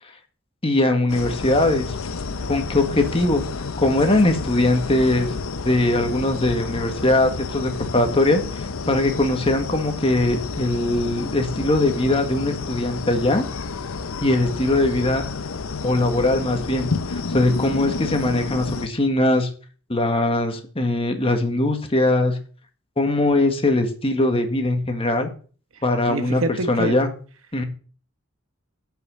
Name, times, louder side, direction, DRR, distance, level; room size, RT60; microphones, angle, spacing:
voice 1, 0.6-1.9 2.5-3.4 3.8-5.3 5.6-13.4 14.2-15.2 15.8-16.9 17.3-19.5 19.9-22.4 23.0-25.3 25.8-26.4 26.7-27.1 27.5-27.6, left 2 dB, 30° left, 1.6 m, -21 dB
sound 1, 1.1-18.9, left 4 dB, 80° left, 0.7 m, -30 dB
voice 2, 26.1-27.0, right 2 dB, 70° right, 1.1 m, -26 dB
8.1 x 5.9 x 7.1 m
head